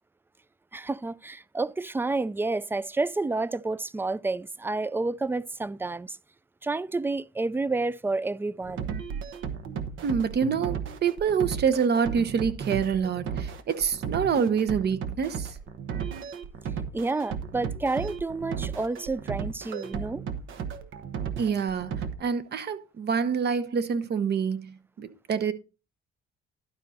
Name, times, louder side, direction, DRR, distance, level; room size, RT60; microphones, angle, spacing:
voice 1, 0.7-6.2 6.6-8.9 16.9-20.2, right 3 dB, 10° right, 0.3 m, -30 dB
sound 1, 8.6-22.1, right 7 dB, 80° right, 1.2 m, -35 dB
voice 2, 10.0-15.5 21.4-21.9 22.2-25.5, right 6 dB, 55° right, 1.0 m, -26 dB
12.0 x 5.1 x 4.2 m
cardioid pair, 90°, 20 cm